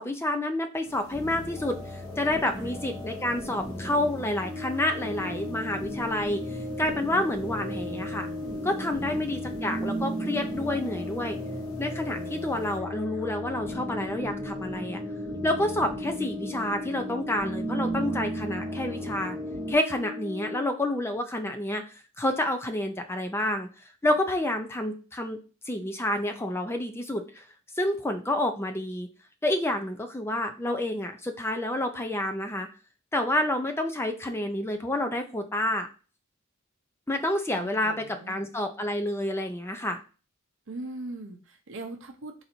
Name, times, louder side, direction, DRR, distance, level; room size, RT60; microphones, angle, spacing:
voice 1, 0.0-8.3 8.6-11.4 11.8-15.0 15.4-19.4 19.7-23.7 24.0-25.4 25.7-27.4 27.8-29.1 29.4-32.7 33.1-35.9 37.1-40.0, left 1 dB, 10° left, 5 dB, 0.4 m, -29 dB
sound 1, 0.8-12.8, left 1 dB, 80° left, 1.0 m, -51 dB
sound 2, 1.1-19.7, right 1 dB, 5° right, 0.8 m, -37 dB
Brass instrument, 4.4-20.8, left 3 dB, 45° right, 1.1 m, -38 dB
voice 2, 8.9-9.9 37.5-38.5 40.7-42.4, right 2 dB, 60° right, 4 dB, 0.6 m, -41 dB
4.0 x 2.6 x 4.3 m, 0.35 s
head